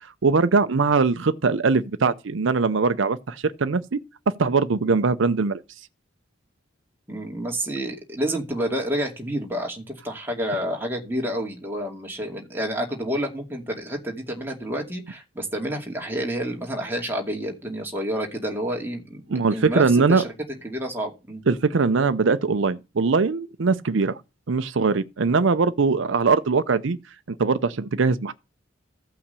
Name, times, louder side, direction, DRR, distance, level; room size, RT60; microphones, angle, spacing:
voice 1, 0.0-4.0 4.4-5.6 19.3-20.2 21.5-24.2 24.5-27.0 27.4-28.3, right 4 dB, 70° right, 0.6 m, -21 dB
voice 2, 7.1-20.3 20.6-21.4 25.3-25.4, equal, 10° right, 2.4 m, -29 dB
15.0 x 5.8 x 6.8 m
head